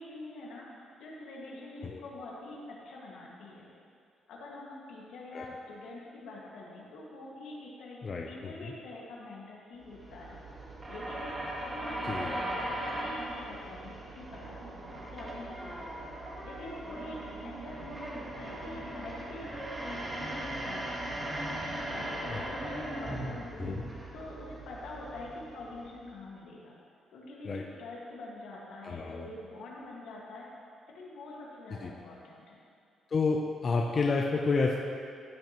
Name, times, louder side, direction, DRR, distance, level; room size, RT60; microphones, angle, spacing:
voice 1, 0.0-2.6 2.8-3.7 4.3-8.0 8.3-10.4 10.9-16.0 16.4-17.2 17.4-21.4 21.9-26.8 27.1-30.5 30.9-32.6, left 2 dB, 80° left, -4 dB, 1.8 m, -45 dB
voice 2, 8.0-8.7 12.1-12.3 22.3-22.4 23.6-23.8 27.4-27.6 28.8-29.3 31.8-31.9 33.1-34.8, left 4 dB, 40° left, 0 dB, 0.6 m, -30 dB
sound 1, 9.8-26.2, right 1 dB, 20° right, 1.4 m, -39 dB
13.5 x 6.1 x 3.0 m, 2.4 s
cardioid pair, 90°, 0 cm